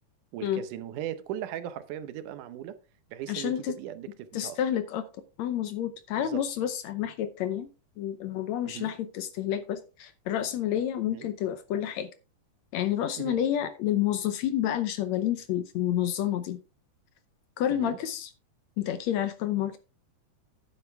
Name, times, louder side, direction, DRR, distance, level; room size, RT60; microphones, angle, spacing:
voice 1, 0.3-2.8 3.1-4.6 6.2-6.4 7.0-7.1 8.6-8.9 11.1-11.3 13.2-13.4 17.7-18.0, right 11 dB, 80° right, 2.3 m, -38 dB
voice 2, 3.3-3.7 4.3-5.0 5.4-7.7 8.0-12.1 12.7-16.6 17.6-18.3 18.8-19.8, left 11 dB, 75° left, 1.8 m, -29 dB
10.5 x 8.1 x 3.4 m
omnidirectional pair, 3.7 m